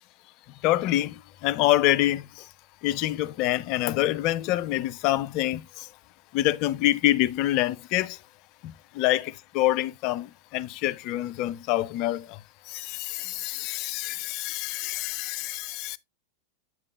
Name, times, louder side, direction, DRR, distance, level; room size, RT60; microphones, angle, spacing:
voice 1, 0.6-2.5 2.8-5.9 6.3-8.2 8.6-12.4 12.7-16.0, left 15 dB, 40° left, 0.4 m, -26 dB
7.9 x 6.6 x 2.3 m
figure-of-eight pair, 90°, 0 cm